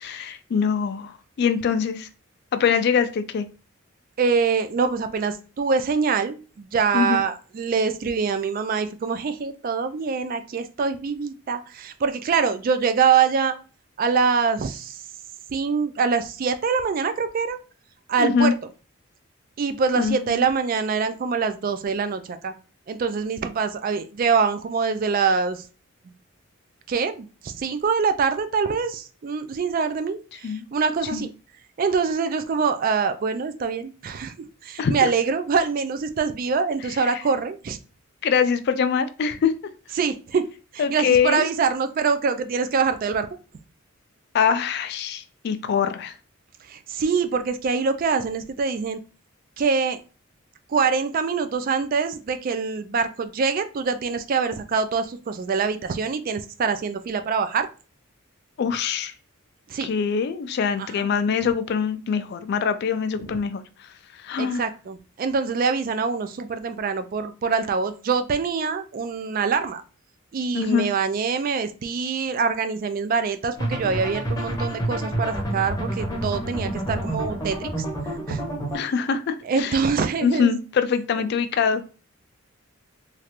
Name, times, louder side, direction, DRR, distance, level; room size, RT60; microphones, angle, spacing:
voice 1, 0.0-2.1 2.5-3.5 6.9-7.2 18.2-18.5 20.0-20.5 30.4-30.6 31.1-31.2 34.8-34.9 37.0-37.2 38.2-39.5 40.8-41.4 44.3-46.1 58.6-59.1 59.8-63.6 64.2-64.6 70.5-70.9 78.7-79.8 80.2-81.8, left 6 dB, 50° left, 10 dB, 0.3 m, -23 dB
voice 2, 4.2-13.6 14.0-15.0 15.5-17.6 18.1-18.5 19.6-22.5 22.9-25.6 26.9-31.3 31.8-34.3 34.6-37.8 40.0-40.4 40.7-43.3 46.7-49.0 49.6-50.0 50.7-57.7 59.7-59.9 60.8-61.1 63.2-63.4 64.4-69.8 70.3-77.9 78.3-78.5 79.4-80.6 81.2-81.3, right 5 dB, 40° right, 9 dB, 0.3 m, -24 dB
sound 1, 73.6-78.8, right 1 dB, 15° left, 0.7 m, -28 dB
3.2 x 2.4 x 2.8 m, 0.35 s
head